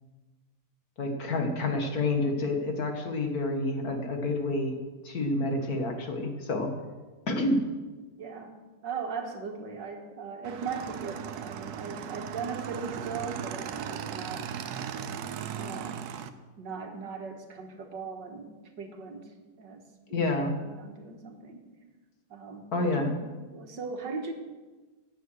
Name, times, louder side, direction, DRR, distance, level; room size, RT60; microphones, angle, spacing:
voice 1, 1.0-4.8 5.0-6.7 7.3-7.7 20.1-20.6 22.7-23.1, left 2 dB, 60° left, 4 dB, 2.3 m, -28 dB
voice 2, 8.2-8.6 8.8-14.6 15.6-16.1 16.6-19.9 20.6-21.6 22.3-23.2 23.5-24.3, right 5 dB, 85° right, 4 dB, 2.3 m, -39 dB
Motorcycle / Engine, 10.4-16.3, right 8 dB, 70° right, 1.2 m, -37 dB
16.5 x 9.5 x 6.4 m, 1.3 s
omnidirectional pair, 1.8 m